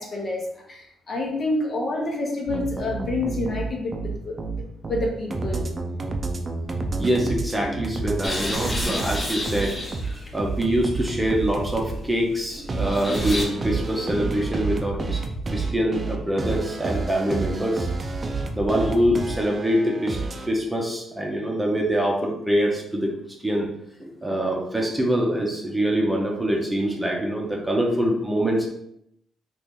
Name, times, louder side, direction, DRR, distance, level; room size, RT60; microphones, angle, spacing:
voice 1, 0.0-4.4 4.9-5.7, left 2 dB, 50° left, -1 dB, 1.0 m, -28 dB
sound 1, 2.5-8.2 8.5-12.0 12.7-20.5, right 3 dB, 40° right, 0.5 m, -29 dB
voice 2, 7.0-9.7 10.1-15.2 15.5-17.9 18.5-23.1 23.4-23.7 24.0-28.7, equal, 10° right, -1 dB, 0.7 m, -24 dB
sound 2, 8.2-13.5, left 1 dB, 25° left, 0.8 m, -32 dB
2.9 x 2.5 x 3.6 m, 0.77 s
cardioid pair, 70°, 0 cm